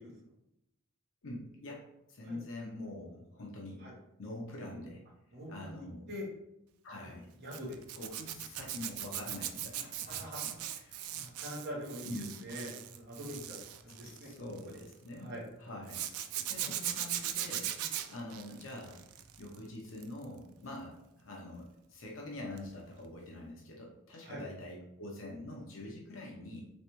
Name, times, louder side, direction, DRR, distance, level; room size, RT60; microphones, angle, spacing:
voice 1, 1.2-3.8 4.2-5.0 5.5-6.1 6.8-7.3 8.0-10.3 10.7-10.9 12.0-12.3 14.0-15.3 15.6-16.1 16.5-17.7 18.1-19.0 19.4-26.6, left 1 dB, 65° left, -2 dB, 0.7 m, -45 dB
voice 2, 5.3-6.3 7.0-7.1 7.4-7.8 10.1-10.6 10.9-13.6 13.8-14.3 14.7-14.8 15.1-15.4 16.6-16.7 24.2-24.4, equal, 50° right, -3 dB, 1.1 m, -44 dB
Zipper (clothing), 7.5-14.9 15.9-19.5 19.9-20.2 22.6-22.7 23.0-23.1, right 11 dB, 90° right, 0.3 m, -39 dB
3.3 x 3.2 x 3.0 m, 0.84 s
head